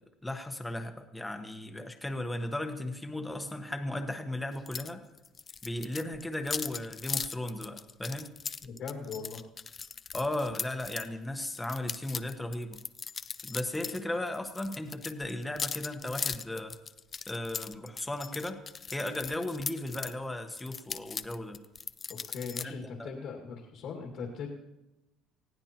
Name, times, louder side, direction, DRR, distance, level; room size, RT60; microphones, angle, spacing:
voice 1, 0.2-5.0 5.6-8.3 10.1-12.8 13.4-16.7 17.3-18.6 18.9-21.6 22.6-23.1, left 1 dB, 10° left, 6 dB, 1.2 m, -36 dB
sound 1, 4.7-4.9 5.2-11.1 11.5-14.0 14.3-20.1 20.6-22.6, left 5 dB, 30° left, 0.4 m, -38 dB
voice 2, 8.6-9.4 22.1-24.5, left 5 dB, 65° left, 0 dB, 2.0 m, -40 dB
20.0 x 15.0 x 3.0 m, 0.97 s
cardioid pair, 130°, 0 cm